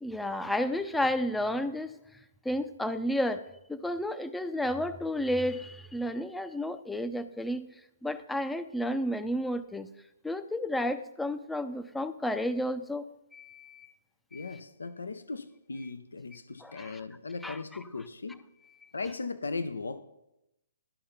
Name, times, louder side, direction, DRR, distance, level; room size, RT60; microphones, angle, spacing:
voice 1, 0.0-2.0 2.4-3.4 3.7-7.7 8.0-9.9 10.2-13.0 13.3-13.9 14.3-14.6 16.6-17.0 17.4-17.6 18.8-18.9, left 1 dB, 5° left, 11 dB, 0.5 m, -32 dB
voice 2, 14.3-18.4 18.9-20.0, left 3 dB, 85° left, 12 dB, 0.6 m, -38 dB
12.0 x 5.4 x 5.7 m, 0.88 s
hypercardioid pair, 135°, 0 cm